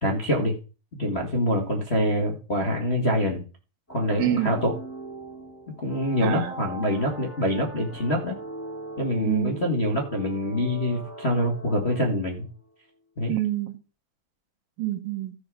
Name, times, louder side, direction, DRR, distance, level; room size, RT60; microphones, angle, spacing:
voice 1, 0.0-0.6 0.9-3.4 3.9-4.7 5.8-8.4 9.0-12.5 13.2-13.3, left 1 dB, 30° left, -1 dB, 1.2 m, -25 dB
sound 1, 3.9-12.5, right 1 dB, 5° left, 2.0 m, -41 dB
voice 2, 4.2-4.5 6.2-6.5 9.2-9.6 13.3-13.8 14.8-15.3, right 13 dB, 85° right, 7 dB, 3.1 m, -27 dB
15.0 x 5.1 x 6.0 m, 0.35 s
omnidirectional pair, 3.9 m